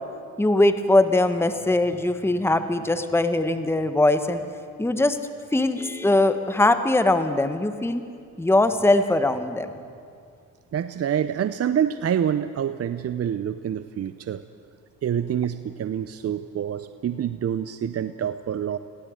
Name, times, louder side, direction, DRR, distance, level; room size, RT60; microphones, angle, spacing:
voice 1, 0.4-4.4 4.8-5.2 5.5-8.0 8.4-9.7, left 2 dB, 5° left, 9 dB, 1.3 m, -21 dB
voice 2, 10.7-14.4 15.0-18.8, right 9 dB, 40° right, 12 dB, 0.7 m, -26 dB
21.5 x 16.5 x 7.8 m, 2.3 s
supercardioid pair, 65°, 38 cm